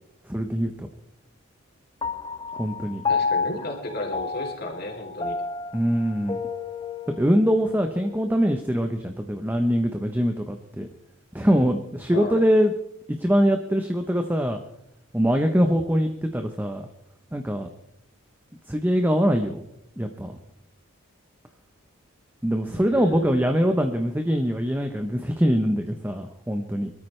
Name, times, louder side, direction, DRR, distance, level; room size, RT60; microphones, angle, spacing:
voice 1, 0.3-0.9 2.6-3.0 5.7-6.4 7.2-10.9 11.3-12.7 13.1-14.6 15.1-16.8 17.3-17.7 18.7-19.6 20.0-20.3 22.4-26.9, equal, 10° right, 5 dB, 0.8 m, -23 dB
Piano, 2.0-8.7, left 4 dB, 20° left, 0.5 m, -31 dB
voice 2, 3.1-5.4 12.1-12.4 22.7-23.5, left 1 dB, 45° left, 1 dB, 3.2 m, -34 dB
24.5 x 13.0 x 3.2 m, 0.81 s
head